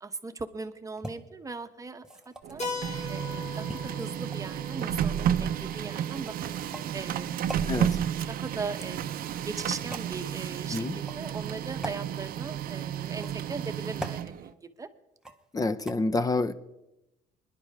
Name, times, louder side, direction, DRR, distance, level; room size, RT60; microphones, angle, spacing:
voice 1, 0.0-2.6 3.1-6.5 6.9-7.6 8.3-14.9, right 4 dB, 20° right, 8 dB, 1.0 m, -39 dB
sound 1, 1.0-1.1 2.0-2.6 3.7-4.6 5.5-5.8 6.6-6.9 7.5-7.7 8.6-9.3 9.9-10.1 10.9-11.2 11.8-12.0 13.0-13.5 14.0-14.2 15.2-15.5 15.9-16.0, right 1 dB, 5° right, 1.0 m, -41 dB
Printer, 2.4-14.5, right 9 dB, 60° right, 0.7 m, -32 dB
Keyboard (musical), 2.6-7.1, left 3 dB, 40° left, 2.7 m, -41 dB
voice 2, 7.7-8.0 10.7-10.9 15.5-16.5, left 3 dB, 20° left, 13 dB, 0.8 m, -27 dB
24.5 x 11.0 x 3.5 m, 0.95 s
cardioid pair, 110°, 17 cm